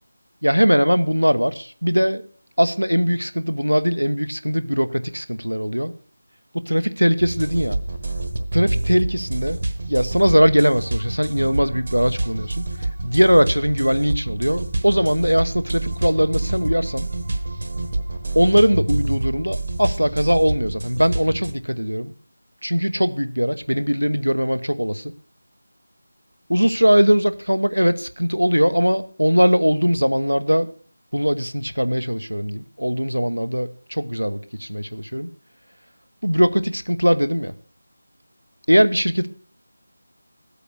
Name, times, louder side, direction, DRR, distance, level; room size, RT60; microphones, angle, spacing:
voice 1, 0.4-2.2 2.6-5.9 6.5-7.8 8.5-17.1 18.3-22.1 22.6-25.1 26.5-30.7 31.1-35.3 36.2-37.5 38.7-39.3, equal, 90° right, 11 dB, 1.1 m, -20 dB
sound 1, 7.2-21.5, right 2 dB, 50° right, 1.2 m, -27 dB
14.5 x 8.4 x 6.2 m, 0.40 s
figure-of-eight pair, 165°, 0 cm